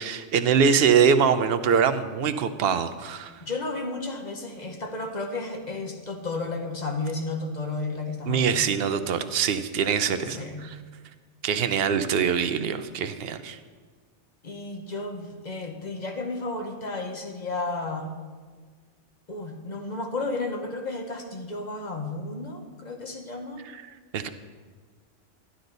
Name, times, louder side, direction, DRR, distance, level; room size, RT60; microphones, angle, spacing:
voice 1, 0.0-3.3 8.3-10.8 11.4-13.6 23.7-23.8 24.1-24.3, right 7 dB, 60° right, 10 dB, 0.8 m, -23 dB
voice 2, 3.4-8.7 10.2-10.7 14.4-18.1 19.3-23.7, left 3 dB, 40° left, 3 dB, 1.1 m, -33 dB
12.5 x 11.5 x 4.0 m, 1.5 s
omnidirectional pair, 1.2 m